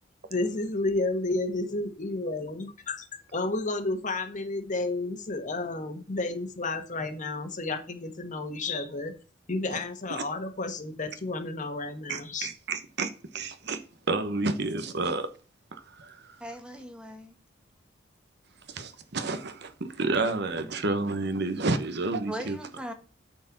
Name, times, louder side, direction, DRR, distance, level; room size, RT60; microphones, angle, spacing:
voice 1, 0.3-3.1 3.3-9.1 9.5-12.5, left 2 dB, 40° left, 1.4 m, -31 dB
voice 2, 12.1-13.8 14.1-15.3 15.7-16.4 18.7-22.6, right 3 dB, 60° right, 1.0 m, -30 dB
voice 3, 16.4-17.3 22.2-22.9, right 1 dB, 5° right, 1.4 m, -39 dB
9.1 x 4.5 x 7.2 m
head